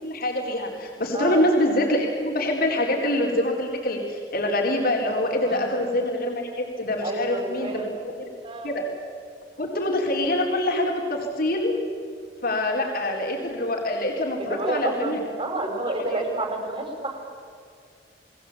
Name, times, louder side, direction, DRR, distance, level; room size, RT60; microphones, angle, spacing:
voice 1, 0.0-7.9 8.2-8.3 8.6-8.9 9.6-11.8 12.4-15.2 16.1-16.2, left 1 dB, 55° left, 0 dB, 4.4 m, -25 dB
voice 2, 5.4-5.8 7.0-7.9 8.4-8.7 14.4-17.2, right 2 dB, 30° right, 2 dB, 6.0 m, -29 dB
30.0 x 21.0 x 8.7 m, 2.3 s
head